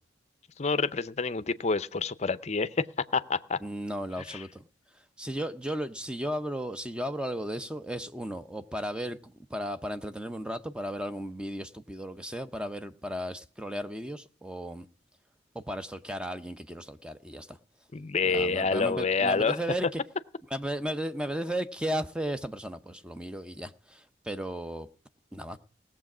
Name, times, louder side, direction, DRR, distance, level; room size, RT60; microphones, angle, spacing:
voice 1, 0.6-2.7 3.1-3.6 4.3-4.4 17.9-19.6, left 4 dB, 35° left, 0.6 m, -27 dB
voice 2, 3.6-4.7 5.2-14.9 15.5-17.6 18.2-20.0 20.5-24.9 25.3-25.6, equal, 5° right, 0.6 m, -35 dB
18.0 x 7.4 x 6.0 m
head